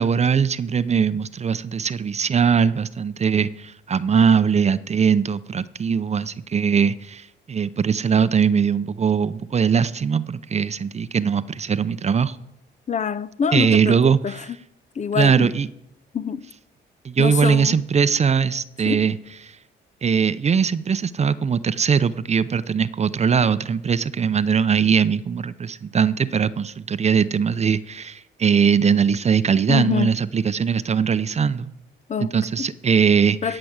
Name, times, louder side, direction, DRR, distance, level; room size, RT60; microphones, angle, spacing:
voice 1, 0.0-12.4 13.5-14.4 15.1-15.7 17.0-19.2 20.0-31.7 32.2-33.6, right 6 dB, 35° right, 0.6 m, -20 dB
voice 2, 12.9-14.4 15.0-15.5 16.1-16.5 17.2-17.8 18.8-19.1 29.7-30.1 32.1-32.7 33.4-33.6, left 7 dB, 35° left, 0.5 m, -25 dB
16.5 x 6.0 x 8.0 m
cardioid pair, 90°, 20 cm